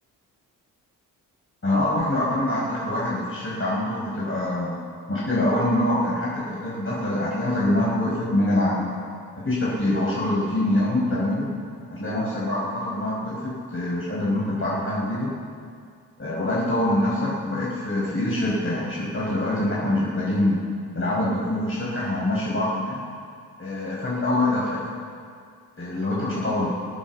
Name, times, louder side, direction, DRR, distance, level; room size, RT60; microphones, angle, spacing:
voice 1, 1.6-4.8 5.1-8.9 9.4-11.5 11.9-15.3 16.2-20.6 20.9-23.0 23.6-24.8 25.8-26.7, left 1 dB, 30° left, -6 dB, 5.3 m, -24 dB
22.0 x 8.9 x 7.3 m, 2.2 s
hypercardioid pair, 40°, 42 cm